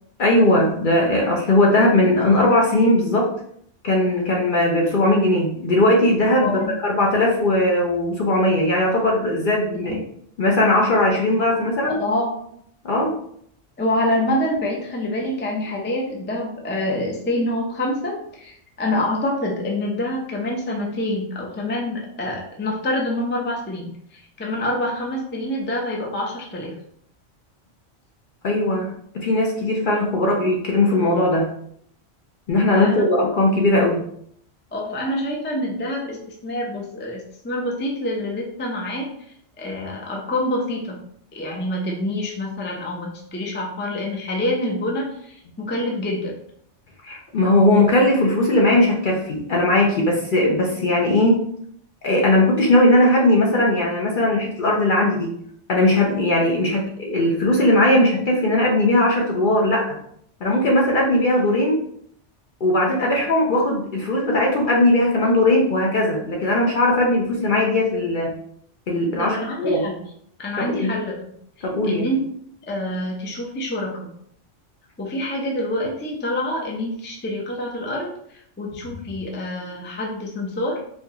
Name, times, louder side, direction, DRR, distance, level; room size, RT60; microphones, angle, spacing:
voice 1, 0.2-3.3 3.8-10.0 10.4-12.0 12.8-13.1 28.4-31.5 32.5-34.1 47.0-51.4 52.0-55.4 55.7-60.0 60.4-61.8 62.6-68.4 68.9-69.8 70.6-70.9 71.6-72.1, left 1 dB, 55° left, -1 dB, 0.7 m, -19 dB
voice 2, 6.4-6.7 9.8-10.0 11.9-12.3 13.8-26.7 32.7-33.0 34.7-39.1 39.6-41.0 41.3-46.4 69.2-70.1 70.4-71.1 71.6-72.2 72.7-74.1 75.0-80.8, left 1 dB, 15° left, -1 dB, 0.4 m, -26 dB
4.4 x 2.3 x 2.8 m, 0.67 s
omnidirectional pair, 1.2 m